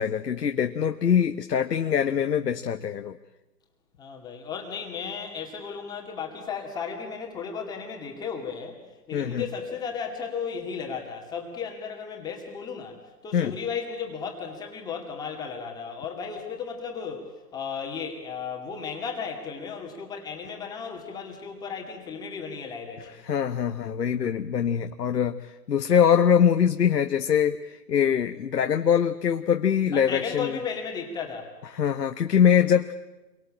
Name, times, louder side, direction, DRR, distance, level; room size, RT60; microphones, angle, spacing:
voice 1, 0.0-3.1 9.1-9.5 13.3-13.6 23.3-30.6 31.7-32.9, left 8 dB, 70° left, 7 dB, 1.3 m, -23 dB
voice 2, 4.0-8.8 9.1-17.2 17.5-23.2 29.9-31.5, left 6 dB, 10° left, 2 dB, 2.2 m, -35 dB
28.0 x 23.5 x 8.7 m, 1.0 s
hypercardioid pair, 155°, 50 cm